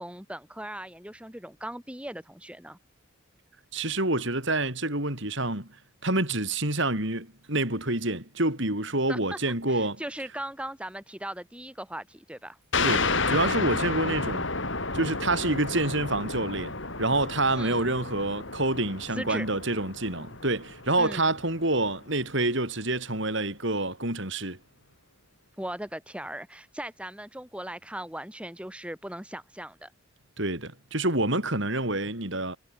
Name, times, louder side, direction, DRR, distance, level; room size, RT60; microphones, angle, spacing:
voice 1, 0.0-2.8 9.1-9.4 9.7-12.6 17.5-17.9 19.1-19.5 21.0-21.3 25.6-29.9, right 1 dB, 5° right, 2.7 m, -38 dB
voice 2, 3.7-5.7 6.0-10.0 12.8-14.5 14.9-24.6 30.4-32.6, right 2 dB, 55° right, 5.5 m, -27 dB
sound 1, 12.7-21.9, left 3 dB, 55° left, 5.3 m, -31 dB
head